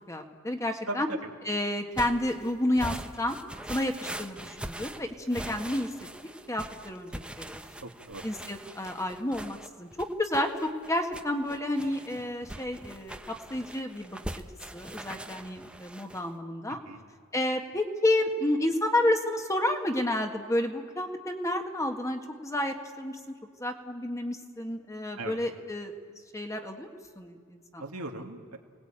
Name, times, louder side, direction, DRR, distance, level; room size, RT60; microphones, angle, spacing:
voice 1, 0.1-1.1 1.4-3.4 3.7-5.9 6.2-7.6 8.2-13.2 13.5-14.2 14.7-16.8 17.3-23.3 23.6-25.9 26.3-26.9 27.1-28.0, left 1 dB, 15° left, 4 dB, 1.6 m, -30 dB
voice 2, 0.9-1.2 7.8-8.2 16.9-17.0 25.2-25.4 27.8-28.6, right 2 dB, 80° right, 2 dB, 2.4 m, -38 dB
sound 1, 1.9-16.3, right 1 dB, 5° right, 0.9 m, -42 dB
29.0 x 19.5 x 8.9 m, 2.1 s
head